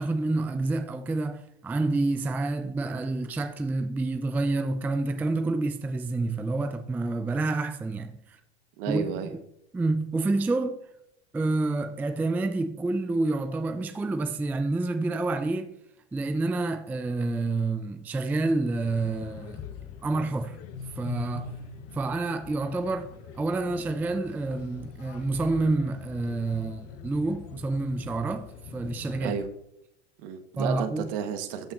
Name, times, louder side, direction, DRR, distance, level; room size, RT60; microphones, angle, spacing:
voice 1, 0.0-8.4 8.9-9.1 9.7-10.8 11.3-15.7 16.1-19.6 20.0-20.6 21.0-21.6 21.9-28.5 28.7-29.4 30.6-31.1, right 2 dB, 5° right, 0.3 m, -28 dB
voice 2, 8.8-9.3 29.2-29.5 30.2-31.7, right 7 dB, 60° right, 1.2 m, -32 dB
sound 1, 18.8-29.5, left 6 dB, 45° left, 1.1 m, -43 dB
13.0 x 5.7 x 2.5 m
hypercardioid pair, 95°, 32 cm